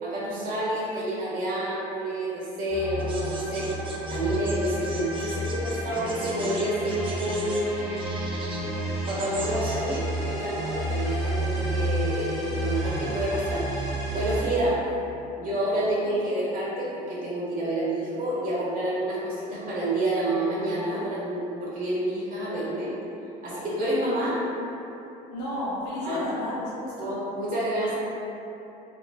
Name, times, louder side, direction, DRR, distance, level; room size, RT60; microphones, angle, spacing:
voice 1, 0.0-3.7 4.1-7.6 9.1-14.8 15.4-22.9 23.4-24.4 26.0-26.2 27.0-27.9, right 1 dB, 45° right, -7 dB, 1.1 m, -28 dB
sound 1, 2.7-14.4, right 1 dB, 5° right, 1.2 m, -31 dB
Eurasian Blue Tit Chicks, 3.0-10.0, right 3 dB, 25° right, 0.5 m, -42 dB
voice 2, 25.3-27.2, left 1 dB, 85° left, -7 dB, 0.8 m, -32 dB
2.9 x 2.7 x 2.3 m, 2.9 s
supercardioid pair, 80°, 19 cm